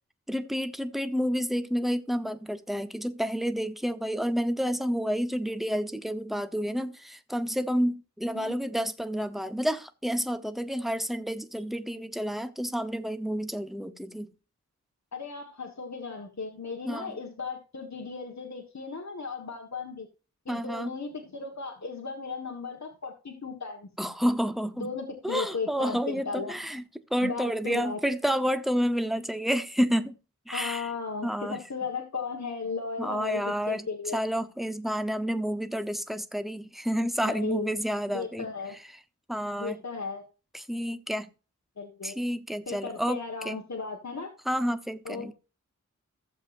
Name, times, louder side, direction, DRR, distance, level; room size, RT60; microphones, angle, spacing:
voice 1, 0.3-14.3 16.9-17.1 20.5-20.9 24.0-24.9 25.2-26.8 27.1-30.2 30.5-30.9 31.2-31.6 33.0-33.9 34.1-38.5 39.3-39.8 40.5-41.3 42.0-43.2 43.4-43.6 44.5-45.3, equal, ahead, 0.9 m, -29 dB
voice 2, 15.1-20.1 20.4-23.9 24.8-26.5 27.2-28.0 30.5-34.2 37.2-37.8 38.1-38.7 39.6-40.2 41.8-42.2 42.7-44.3 45.0-45.3, left 4 dB, 60° left, 1.6 m, -36 dB
15.0 x 7.3 x 2.6 m
wide cardioid pair, 65°, 31 cm